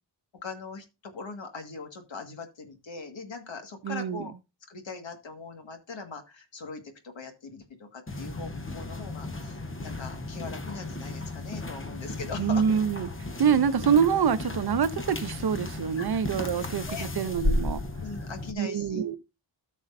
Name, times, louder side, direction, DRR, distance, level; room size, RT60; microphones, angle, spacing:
voice 1, 0.4-4.3 4.7-12.6 16.0-17.1 18.0-19.1, left 4 dB, 80° left, 1.9 m, -41 dB
voice 2, 3.8-4.3 12.4-13.1 13.4-16.8 17.2-17.8 18.6-19.2, right 7 dB, 55° right, 0.7 m, -25 dB
sound 1, 8.1-18.5, left 2 dB, 30° left, 1.1 m, -34 dB
13.5 x 6.3 x 2.6 m
wide cardioid pair, 70°, 45 cm